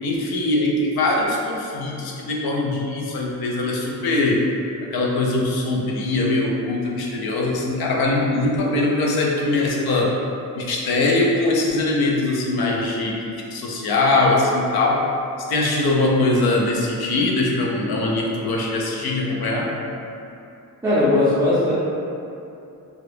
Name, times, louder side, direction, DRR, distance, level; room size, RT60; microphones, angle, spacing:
voice 1, 0.0-4.5 4.8-10.2 10.5-15.1 15.5-19.7, left 2 dB, 70° left, -2 dB, 0.6 m, -22 dB
voice 2, 20.8-21.7, left 2 dB, 10° right, -11 dB, 0.4 m, -18 dB
2.8 x 2.4 x 3.3 m, 2.7 s
wide cardioid pair, 160°, 38 cm